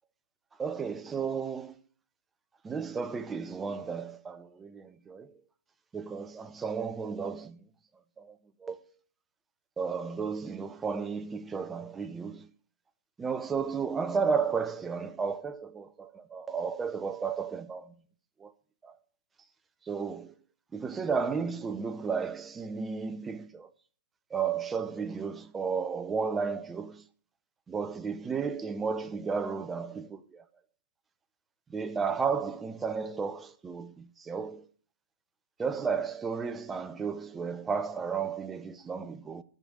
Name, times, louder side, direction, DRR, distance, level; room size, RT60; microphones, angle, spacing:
voice 1, 0.6-1.7 2.6-4.4 5.9-7.5 8.6-8.7 9.8-12.4 13.2-15.8 16.3-17.8 19.9-20.2 20.7-23.5 24.3-26.9 27.7-30.1 31.7-33.9 34.3-34.6 35.6-39.4, right 5 dB, 10° right, 0.8 m, -32 dB
14.5 x 5.3 x 6.4 m
hypercardioid pair, 140°, 0 cm